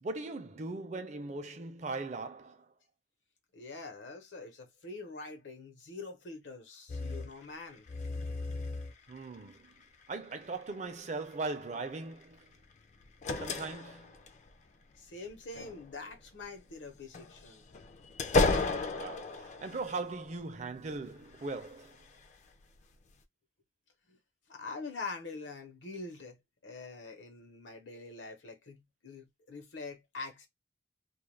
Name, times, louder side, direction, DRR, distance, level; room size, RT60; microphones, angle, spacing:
voice 1, 0.0-2.7 9.1-9.7 10.1-12.5 13.4-14.2 18.9-22.0, right 3 dB, 40° right, 0.5 m, -39 dB
voice 2, 3.5-7.8 13.8-13.9 15.0-17.6 24.1-24.2 24.5-26.4 26.6-30.5, left 3 dB, 80° left, 0.8 m, -44 dB
sound 1, 6.9-7.3 7.9-9.2 10.1-10.3 12.8-14.5 15.3-16.2 17.0-20.5 20.9-22.3 22.8-22.9, left 3 dB, 40° left, 0.3 m, -34 dB
2.4 x 2.1 x 3.0 m
head